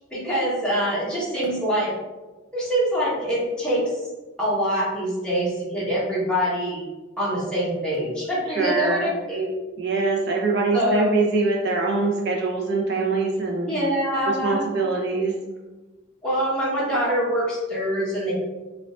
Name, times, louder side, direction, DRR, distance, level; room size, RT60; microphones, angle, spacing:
voice 1, 0.1-1.9 2.5-3.8 4.4-6.8 7.2-9.5 10.7-11.1 13.7-14.6 16.2-18.3, equal, 5° left, -8 dB, 1.0 m, -24 dB
voice 2, 8.5-9.1 9.8-13.7 14.4-15.3, right 3 dB, 55° right, -1 dB, 0.7 m, -23 dB
4.5 x 2.4 x 2.4 m, 1.2 s
head